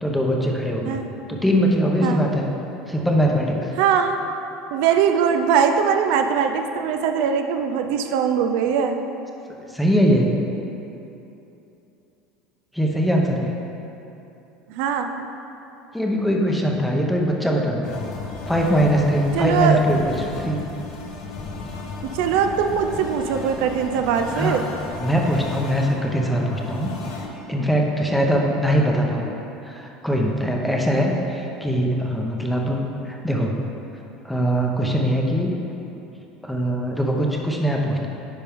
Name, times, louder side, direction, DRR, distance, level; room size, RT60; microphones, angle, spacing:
voice 1, 0.0-1.0 1.3-2.5 2.9-3.7 9.7-10.3 12.7-13.5 15.9-18.0 18.5-20.6 24.3-24.6 25.0-26.9 27.5-29.3 29.6-32.8 33.0-33.6 34.2-35.5 36.4-38.1, equal, ahead, -1 dB, 0.8 m, -21 dB
voice 2, 3.8-4.2 4.7-9.0 14.7-15.1 19.4-19.8 22.1-24.7, right 7 dB, 70° right, 6 dB, 0.5 m, -21 dB
sound 1, 17.8-27.3, left 3 dB, 65° left, 1.1 m, -34 dB
10.0 x 5.2 x 3.5 m, 2.9 s
cardioid pair, 145°, 0 cm